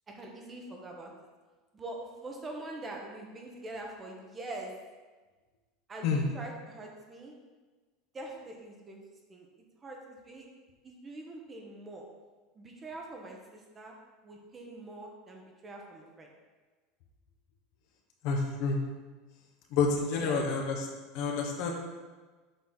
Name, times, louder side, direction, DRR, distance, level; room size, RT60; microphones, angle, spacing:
voice 1, 0.1-1.1 1.7-4.7 5.9-7.3 8.1-9.0 9.3-9.5 9.8-10.5 10.8-12.0 12.5-13.9 14.2-16.3 20.1-20.4, right 2 dB, 20° right, 0 dB, 1.0 m, -44 dB
voice 2, 18.2-18.8 19.7-20.9 21.1-21.7, left 4 dB, 60° left, 2 dB, 1.0 m, -28 dB
7.0 x 4.0 x 4.0 m, 1.3 s
supercardioid pair, 140°, 0 cm